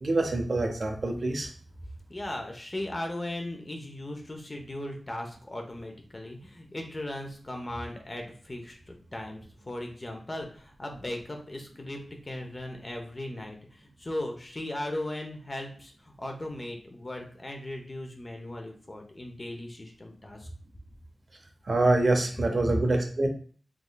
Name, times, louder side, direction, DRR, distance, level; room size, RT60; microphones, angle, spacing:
voice 1, 0.0-1.5 21.7-23.3, right 2 dB, 55° right, 3 dB, 0.6 m, -25 dB
voice 2, 2.1-20.5 22.6-22.8, left 1 dB, 30° left, 2 dB, 0.7 m, -37 dB
3.6 x 3.2 x 2.2 m, 0.43 s
wide cardioid pair, 80°, 0 cm